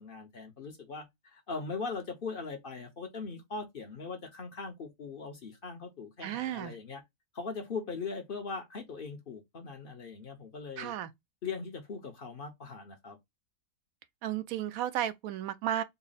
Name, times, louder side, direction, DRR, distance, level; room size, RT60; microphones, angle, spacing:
voice 1, 0.0-7.0 7.3-10.9 11.4-13.2, left 4 dB, 45° left, 0.9 m, -40 dB
voice 2, 6.2-6.7 10.8-11.1 14.2-15.8, right 11 dB, 80° right, 1.0 m, -33 dB
4.1 x 2.0 x 3.8 m
omnidirectional pair, 1.5 m